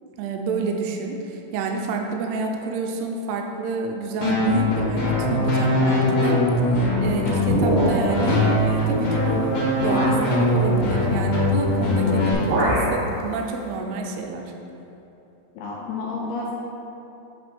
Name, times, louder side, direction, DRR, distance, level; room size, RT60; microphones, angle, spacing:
voice 1, 0.2-6.4 7.0-14.5, right 4 dB, 85° right, 2 dB, 2.3 m, -29 dB
sound 1, 4.2-12.3, left 1 dB, 65° left, 1.8 m, -21 dB
sound 2, 7.5-8.3 9.1-9.2 9.8-10.2 11.6-11.9 12.2-13.0, right 1 dB, 70° right, 1.8 m, -24 dB
voice 2, 15.5-16.5, left 3 dB, 80° left, -3 dB, 2.4 m, -31 dB
8.1 x 3.4 x 5.2 m, 2.9 s
omnidirectional pair, 5.2 m